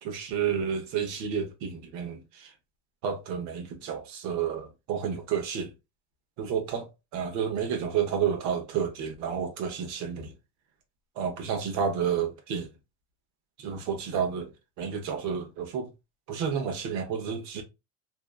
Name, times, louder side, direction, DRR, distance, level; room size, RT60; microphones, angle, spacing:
voice 1, 0.0-2.5 3.0-5.7 6.4-10.3 11.2-12.7 13.6-15.9 16.3-17.6, right 7 dB, 60° right, 0.8 m, -30 dB
2.7 x 2.2 x 2.2 m
supercardioid pair, 115°, 33 cm